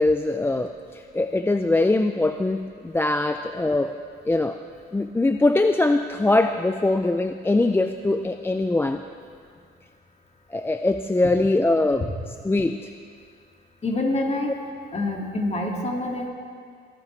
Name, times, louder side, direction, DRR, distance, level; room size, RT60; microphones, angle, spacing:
voice 1, 0.0-4.0 4.3-4.6 4.9-9.0 10.5-12.1 12.4-12.8, left 2 dB, 10° left, 7 dB, 0.4 m, -22 dB
voice 2, 13.8-14.5 14.9-16.3, left 2 dB, 35° left, 1 dB, 2.1 m, -26 dB
21.5 x 12.0 x 3.2 m, 2.1 s
cardioid pair, 90°, 20 cm